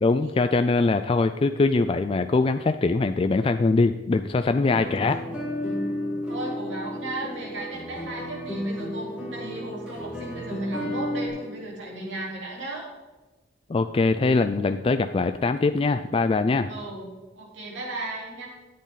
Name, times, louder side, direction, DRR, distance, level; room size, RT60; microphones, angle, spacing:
voice 1, 0.0-5.2 13.7-16.7, left 3 dB, 30° left, 8 dB, 0.3 m, -22 dB
sound 1, 4.7-11.3, left 1 dB, 5° right, 3.5 m, -32 dB
voice 2, 6.3-12.9 16.7-17.1 17.3-18.5, right 2 dB, 75° right, -3 dB, 3.9 m, -35 dB
13.5 x 8.5 x 4.0 m, 1.2 s
head